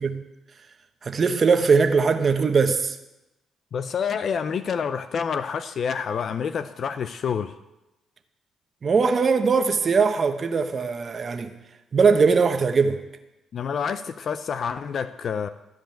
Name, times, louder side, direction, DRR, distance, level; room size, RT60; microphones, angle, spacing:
voice 1, 1.0-3.0 8.8-11.5 11.9-13.0, right 5 dB, 40° right, 1.0 m, -20 dB
voice 2, 3.7-7.6 13.5-15.5, left 6 dB, 55° left, 0.5 m, -28 dB
13.0 x 5.2 x 9.0 m
cardioid pair, 90°, 0 cm